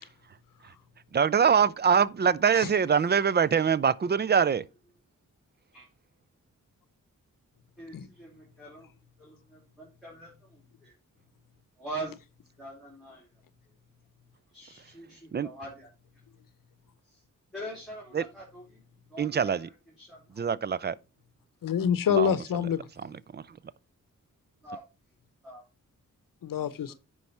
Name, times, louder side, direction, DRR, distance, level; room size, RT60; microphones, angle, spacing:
voice 1, 1.1-4.6 15.3-15.5 18.1-18.3 19.2-19.7 20.4-21.0 22.1-22.4 23.0-23.6, right 7 dB, 30° right, 0.4 m, -24 dB
voice 2, 7.8-8.9 9.2-10.9 11.8-12.2 12.6-13.3 14.5-15.9 17.5-18.6 19.1-19.6 20.0-20.2 24.6-24.8 25.4-25.6 26.6-27.0, right 1 dB, ahead, 3.5 m, -43 dB
voice 3, 21.6-22.9 26.4-26.9, left 8 dB, 85° left, 0.7 m, -27 dB
9.6 x 4.8 x 4.3 m
wide cardioid pair, 120°, 32 cm